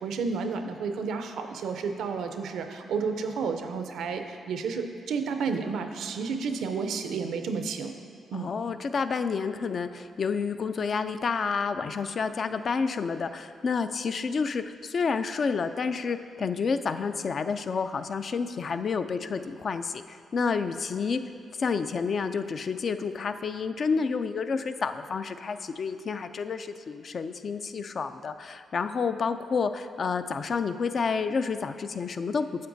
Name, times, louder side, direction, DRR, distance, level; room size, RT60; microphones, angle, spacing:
voice 1, 0.0-7.9 8.3-8.5, right 5 dB, 80° right, 6 dB, 0.5 m, -31 dB
voice 2, 8.3-21.2 21.6-32.7, left 5 dB, 50° left, 10 dB, 0.3 m, -29 dB
9.4 x 6.8 x 2.6 m, 2.2 s
cardioid pair, 80°, 0 cm